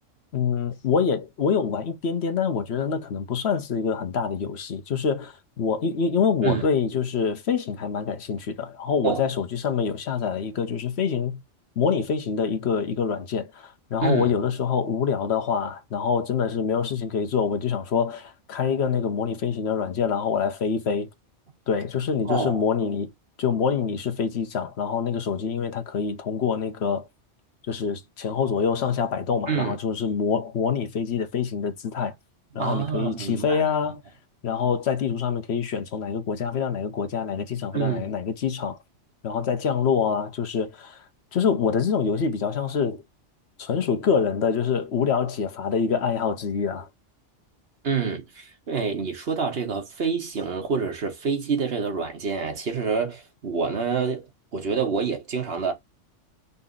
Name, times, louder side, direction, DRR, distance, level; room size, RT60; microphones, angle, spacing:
voice 1, 0.3-11.4 11.8-21.1 21.7-23.1 23.4-27.0 27.7-32.1 32.5-34.0 34.4-38.8 39.2-41.0 41.3-43.0 43.6-46.9, left 6 dB, 60° left, 1.1 m, -25 dB
voice 2, 14.0-14.3 22.3-22.6 29.5-29.8 32.5-33.6 37.7-38.1 47.8-55.7, right 5 dB, 55° right, 1.5 m, -27 dB
4.1 x 2.8 x 3.8 m
omnidirectional pair, 1.2 m